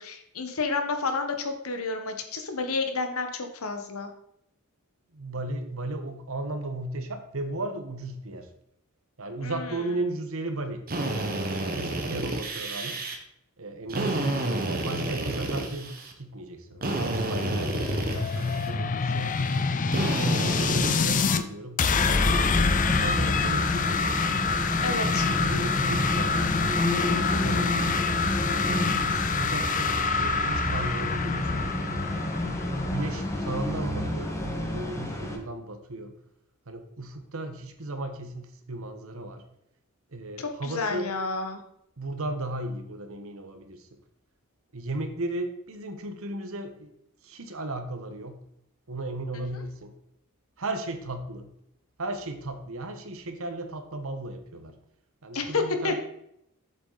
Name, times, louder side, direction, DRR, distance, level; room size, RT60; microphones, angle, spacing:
voice 1, 0.0-4.1 9.4-9.8 17.4-17.5 19.9-20.0 24.8-25.3 40.4-41.6 49.3-49.4 55.3-55.9, left 4 dB, 70° left, 5 dB, 1.3 m, -30 dB
voice 2, 5.1-8.5 9.2-10.8 11.7-13.0 13.6-19.4 19.9-24.0 24.9-26.4 27.2-27.7 28.7-32.2 32.9-36.2 36.7-39.4 40.1-41.1 42.0-43.9 44.7-46.9 47.2-48.4 48.9-49.9 50.6-51.5 52.0-54.7 55.2-56.0, right 2 dB, 70° right, 7 dB, 1.3 m, -35 dB
Drill, 10.9-13.2 13.9-16.1 16.8-18.7 19.9-21.3, right 2 dB, 45° right, 1.3 m, -30 dB
sound 1, 16.8-21.4 21.8-33.4, left 5 dB, 35° left, 0.5 m, -27 dB
sound 2, 22.0-35.4, left 1 dB, 15° left, 1.4 m, -29 dB
8.0 x 7.3 x 4.1 m, 0.75 s
head